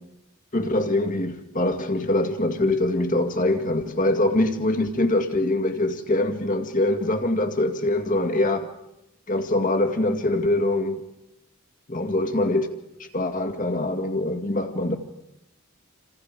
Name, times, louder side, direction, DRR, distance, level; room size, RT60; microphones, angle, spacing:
voice 1, 0.5-8.7 9.3-11.0 11.9-12.7 13.0-15.0, left 1 dB, 35° left, 2.1 m, -23 dB
28.5 x 27.0 x 5.1 m
head